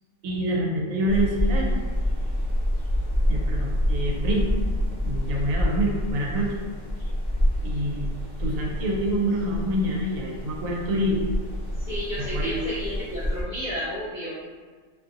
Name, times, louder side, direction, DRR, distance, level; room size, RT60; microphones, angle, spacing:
voice 1, 0.2-1.7 3.3-4.5 5.0-6.5 7.6-8.1 8.4-11.2 12.2-12.6, right 1 dB, 85° right, -1 dB, 1.0 m, -26 dB
sound 1, 1.1-13.4, equal, 25° right, 1.0 m, -27 dB
voice 2, 11.8-14.4, equal, 65° left, -9 dB, 0.4 m, -32 dB
2.6 x 2.5 x 2.6 m, 1.5 s
omnidirectional pair, 1.4 m